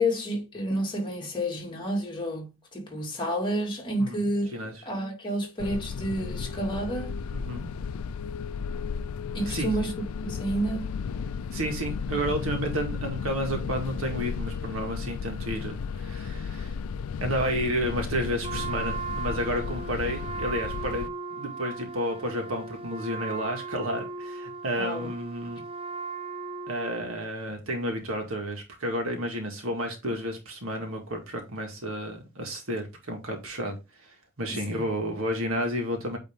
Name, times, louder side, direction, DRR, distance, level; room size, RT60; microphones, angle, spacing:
voice 1, 0.0-4.5 4.9-7.1 9.3-9.9 10.3-10.9 24.8-25.1 34.5-34.8, equal, 25° left, 2.4 m, -30 dB
sound 1, 5.6-21.1, left 6 dB, 85° left, 0.4 m, -34 dB
voice 2, 7.3-7.7 9.4-9.9 11.5-16.8 17.2-25.6 26.7-33.8 34.0-36.2, equal, 75° right, 1.9 m, -31 dB
Wind instrument woodwind instrument, 18.4-27.2, right 4 dB, 25° right, 0.8 m, -37 dB
8.7 x 3.5 x 3.6 m
head